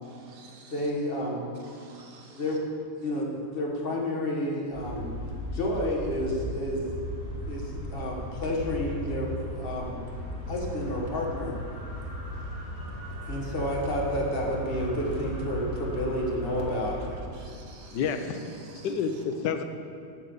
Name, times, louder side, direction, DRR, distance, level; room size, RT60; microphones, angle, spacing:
voice 1, 0.0-0.9 1.6-2.4 7.5-7.6 12.3-12.4 17.3-18.0 18.6-18.9, right 4 dB, 60° right, 1 dB, 1.6 m, -53 dB
voice 2, 0.7-1.4 2.3-2.6 3.0-3.3 3.5-5.1 5.5-6.8 7.5-7.6 7.9-10.0 10.5-11.6 13.2-17.0 17.3-18.0 18.7-18.8, left 1 dB, 35° left, -3 dB, 1.3 m, -30 dB
sound 1, 4.7-17.2, equal, 30° right, 2.3 m, -36 dB
voice 3, 17.9-18.4 18.8-19.6, left 6 dB, 70° left, 8 dB, 1.2 m, -29 dB
7.6 x 6.7 x 6.8 m, 2.4 s
omnidirectional pair, 2.1 m